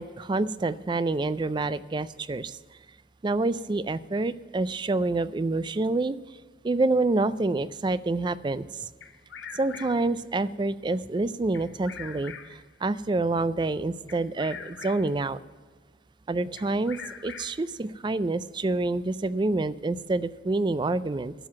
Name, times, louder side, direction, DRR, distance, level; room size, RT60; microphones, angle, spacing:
voice 1, 0.0-2.6 3.2-6.2 6.6-8.9 9.5-15.4 16.3-21.3, right 2 dB, 25° right, 16 dB, 0.4 m, -27 dB
Bird vocalization bird call bird song, 9.0-10.2 11.5-12.7 14.1-15.3 16.6-17.8, left 7 dB, 75° left, 0.8 m, -43 dB
12.0 x 7.6 x 7.5 m, 1.5 s
head